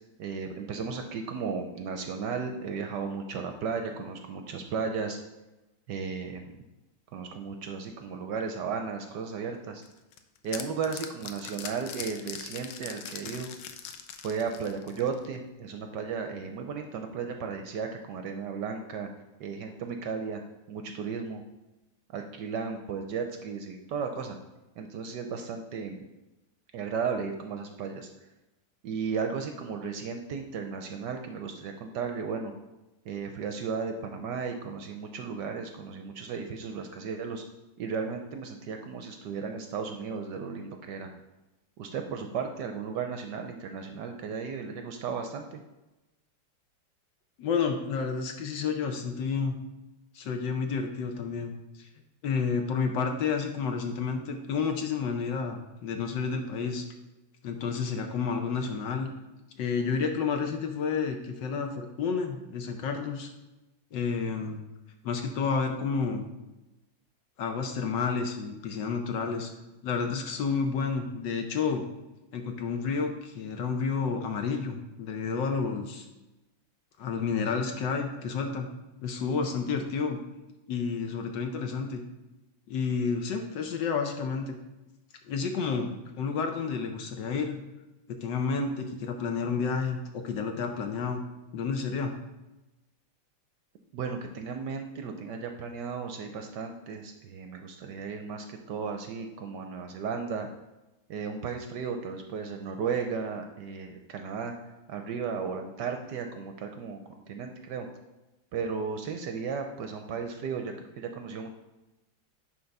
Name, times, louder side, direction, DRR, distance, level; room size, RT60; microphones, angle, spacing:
voice 1, 0.2-5.2 5.9-6.6 7.1-9.8 10.4-13.5 14.2-19.1 19.4-20.4 20.7-21.4 22.1-24.4 24.8-26.1 26.7-28.1 28.8-32.5 33.0-37.4 37.8-41.1 41.8-45.6 93.9-100.5 101.1-104.5 104.9-107.0 107.3-107.9 108.5-111.5, right 5 dB, 70° right, 5 dB, 1.1 m, -35 dB
sound 1, 9.8-15.3, left 8 dB, 90° left, 1.5 m, -41 dB
voice 2, 47.4-49.6 50.1-51.5 52.2-56.8 57.4-59.1 59.6-63.3 63.9-64.6 65.0-66.3 67.4-69.5 69.8-71.8 72.3-76.1 77.0-78.7 79.0-80.2 80.7-82.0 82.7-84.6 85.3-85.9 86.2-87.6 88.2-91.2 91.5-92.1, left 5 dB, 65° left, 4 dB, 1.4 m, -30 dB
9.8 x 3.7 x 5.3 m, 1.0 s
omnidirectional pair, 2.3 m